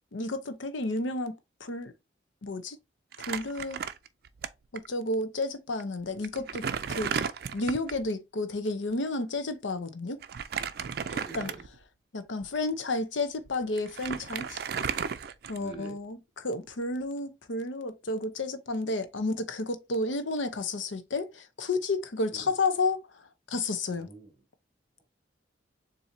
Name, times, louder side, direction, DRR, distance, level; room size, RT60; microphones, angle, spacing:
voice 1, 0.1-1.3 1.6-1.9 2.4-2.8 3.3-3.8 4.7-7.1 7.5-10.2 11.3-11.5 12.1-14.6 14.9-15.0 15.5-23.0 23.5-24.1, left 2 dB, 85° left, 0.7 m, -31 dB
Crumpling crinkling, 3.1-4.5 4.8-4.9 5.7-5.8 6.2-8.0 10.2-11.8 12.4-12.6 13.5-13.6 13.8-15.9, right 7 dB, 55° right, 0.4 m, -34 dB
voice 2, 11.0-11.7 15.5-16.0 22.3-22.5 23.9-24.3, right 2 dB, 5° right, 2.9 m, -45 dB
7.1 x 2.7 x 2.7 m
head